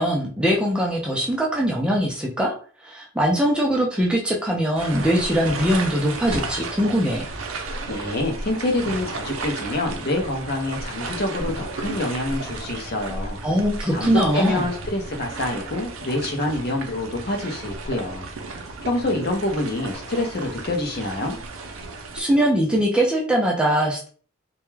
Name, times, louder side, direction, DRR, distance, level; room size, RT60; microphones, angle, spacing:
voice 1, 0.0-2.5 2.8-7.2 13.4-14.7 22.1-24.1, equal, 5° right, -2 dB, 0.3 m, -21 dB
sound 1, 4.8-22.2, right 3 dB, 85° right, 0.5 m, -33 dB
voice 2, 7.9-13.4 13.9-18.3 18.9-21.4, left 2 dB, 50° left, 3 dB, 0.5 m, -26 dB
2.2 x 2.1 x 3.1 m, 0.42 s
head